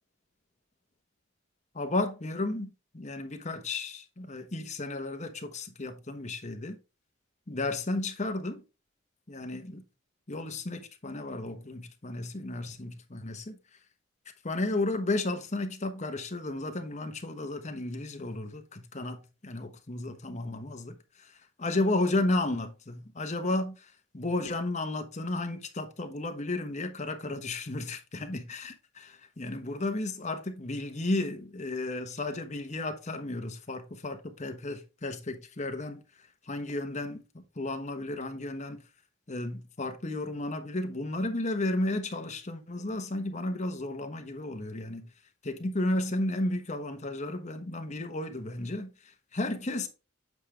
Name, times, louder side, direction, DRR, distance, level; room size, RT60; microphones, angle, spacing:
voice 1, 1.7-6.8 7.5-8.6 9.3-9.8 10.3-13.6 14.4-36.0 36.4-38.8 39.3-45.1 45.4-49.9, left 2 dB, 35° left, 1.1 m, -33 dB
8.1 x 5.1 x 3.3 m
head